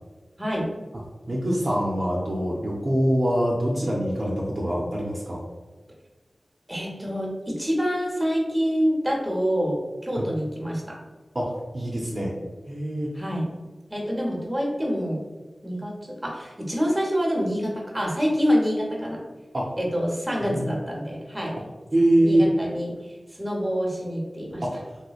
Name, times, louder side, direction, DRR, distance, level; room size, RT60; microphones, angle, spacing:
voice 1, 0.4-0.7 6.7-11.0 13.1-15.2 15.6-19.2 19.8-21.6 22.2-24.6, equal, 15° right, -3 dB, 0.9 m, -27 dB
voice 2, 1.3-5.4 10.1-10.2 11.3-12.3 12.7-13.1 19.5-19.7 20.5-20.7 21.9-22.5 24.6-24.8, right 1 dB, 50° right, -4 dB, 0.6 m, -24 dB
3.2 x 3.1 x 2.3 m, 1.3 s
wide cardioid pair, 65°, 0 cm